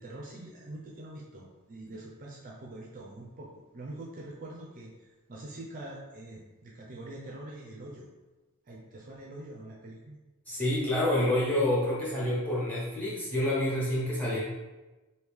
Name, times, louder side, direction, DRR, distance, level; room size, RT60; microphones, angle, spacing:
voice 1, 0.0-8.1 8.7-10.2, right 1 dB, 40° right, -3 dB, 0.5 m, -44 dB
voice 2, 10.5-14.4, left 1 dB, 10° left, -7 dB, 1.1 m, -28 dB
3.1 x 2.7 x 3.5 m, 1.1 s
head